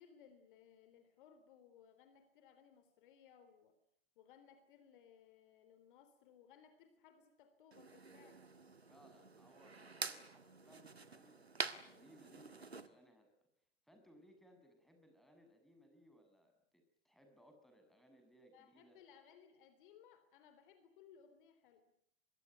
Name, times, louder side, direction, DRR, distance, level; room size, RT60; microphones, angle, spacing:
voice 1, 0.0-3.8 4.2-8.4 18.5-21.8, left 8 dB, 55° left, 10 dB, 3.6 m, -64 dB
sound 1, 7.7-12.9, right 4 dB, 90° right, 1.7 m, -47 dB
voice 2, 8.9-13.3 13.8-19.0, equal, ahead, 5 dB, 7.3 m, -66 dB
25.0 x 22.0 x 9.3 m, 0.70 s
figure-of-eight pair, 95°, 31 cm